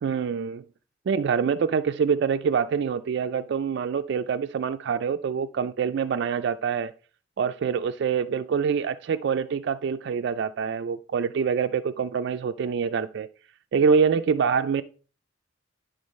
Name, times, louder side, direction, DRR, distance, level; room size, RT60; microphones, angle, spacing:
voice 1, 0.0-0.6 1.1-6.9 7.4-13.3 13.7-14.8, right 6 dB, 60° right, 0.3 m, -25 dB
10.5 x 3.8 x 5.2 m
head